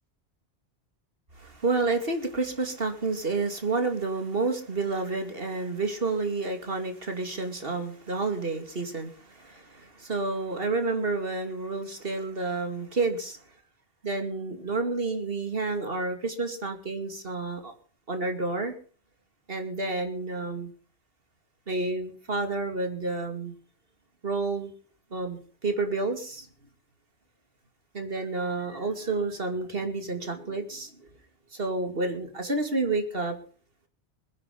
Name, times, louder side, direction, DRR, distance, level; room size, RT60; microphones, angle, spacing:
voice 1, 1.4-13.4 14.0-17.7 18.1-18.7 19.5-20.7 21.7-23.5 24.2-24.7 25.1-26.5 27.9-31.1 31.5-33.4, right 3 dB, 60° right, 6 dB, 2.8 m, -30 dB
20.5 x 11.0 x 5.3 m, 0.41 s
omnidirectional pair, 1.1 m